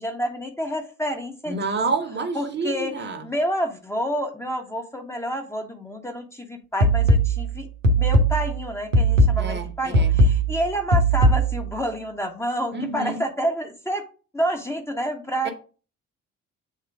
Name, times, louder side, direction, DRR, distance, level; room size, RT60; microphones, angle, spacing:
voice 1, 0.0-1.8 2.3-2.9 3.2-14.0 14.3-15.5, equal, 5° left, 4 dB, 1.3 m, -29 dB
voice 2, 1.5-3.3 9.4-10.1 12.7-13.2 15.4-15.5, right 4 dB, 30° right, 6 dB, 1.4 m, -28 dB
sound 1, 6.8-11.8, right 1 dB, 90° right, 0.8 m, -19 dB
7.6 x 4.2 x 3.6 m, 0.37 s
figure-of-eight pair, 45°, 37 cm